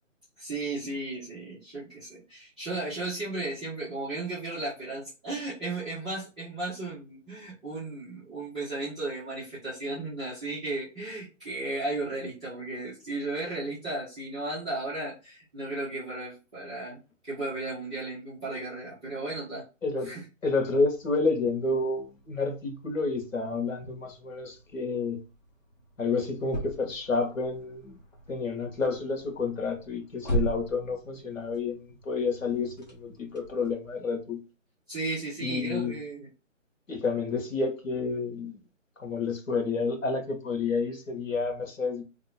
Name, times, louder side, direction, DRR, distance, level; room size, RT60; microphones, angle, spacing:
voice 1, 0.4-19.6 20.0-20.2 34.9-36.3, right 2 dB, 5° right, 0.6 m, -35 dB
voice 2, 19.8-20.1 20.4-25.2 26.0-28.0 28.3-34.4 35.4-35.9 36.9-38.6 39.0-42.0, left 4 dB, 80° left, 1.3 m, -30 dB
sound 1, 20.5-33.7, right 1 dB, 35° left, 0.8 m, -40 dB
2.9 x 2.3 x 4.0 m
figure-of-eight pair, 160°, 39 cm